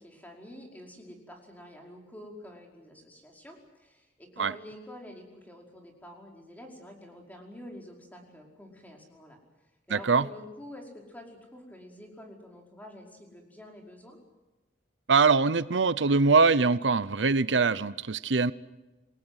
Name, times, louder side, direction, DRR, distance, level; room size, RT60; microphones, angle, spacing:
voice 1, 0.0-9.4 9.9-14.2, left 1 dB, 10° left, 1 dB, 5.2 m, -48 dB
voice 2, 9.9-10.3 15.1-18.5, right 4 dB, 85° right, 16 dB, 0.7 m, -23 dB
28.5 x 19.5 x 8.2 m, 1.1 s
head